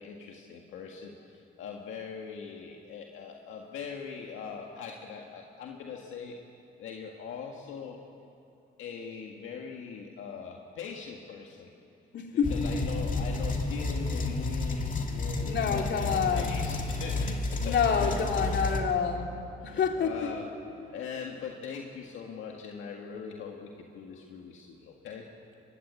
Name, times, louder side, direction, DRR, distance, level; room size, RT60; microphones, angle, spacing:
voice 1, 0.0-6.4 6.8-8.0 8.8-11.7 12.3-18.5 19.6-20.5 20.9-25.3, left 6 dB, 80° left, 1 dB, 1.9 m, -41 dB
voice 2, 12.1-12.6 15.4-16.6 17.6-20.4 21.3-21.4, left 6 dB, 65° left, 2 dB, 2.9 m, -28 dB
sound 1, 12.4-18.8, left 3 dB, 40° left, 2.6 m, -31 dB
23.0 x 21.5 x 8.4 m, 2.7 s
cardioid pair, 90°, 20 cm